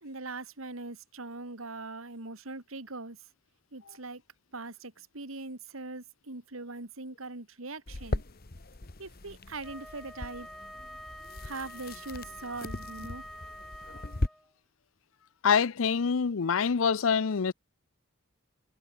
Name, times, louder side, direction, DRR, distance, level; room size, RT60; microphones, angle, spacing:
voice 1, 0.0-3.2 3.7-4.2 4.5-8.2 9.0-10.5 11.4-13.2, right 3 dB, 90° right, 2.5 m, -41 dB
sound 1, 7.9-14.3, left 2 dB, 50° left, 1.2 m, -38 dB
Wind instrument woodwind instrument, 9.6-14.5, equal, ahead, 4.6 m, -47 dB
voice 2, 15.4-17.5, left 6 dB, 75° left, 0.6 m, -25 dB
head